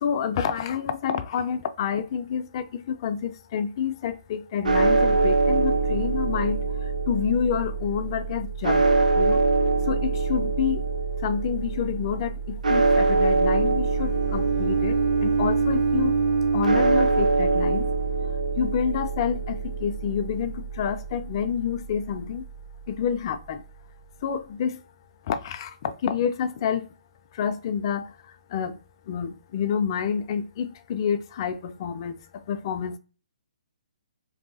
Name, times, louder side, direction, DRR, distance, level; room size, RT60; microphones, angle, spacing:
voice 1, 0.0-6.6 7.1-8.9 9.2-9.4 9.9-10.8 11.2-15.0 15.2-16.1 16.5-17.9 18.6-22.4 22.9-23.6 24.2-24.8 25.3-26.9 27.3-28.1 28.5-28.7 29.1-33.0, left 7 dB, 40° left, 0.3 m, -28 dB
sound 1, 4.6-22.9, right 3 dB, 85° right, 0.6 m, -25 dB
Bowed string instrument, 13.9-18.1, right 4 dB, 30° right, 0.5 m, -25 dB
3.1 x 2.6 x 2.7 m
hypercardioid pair, 145°, 4 cm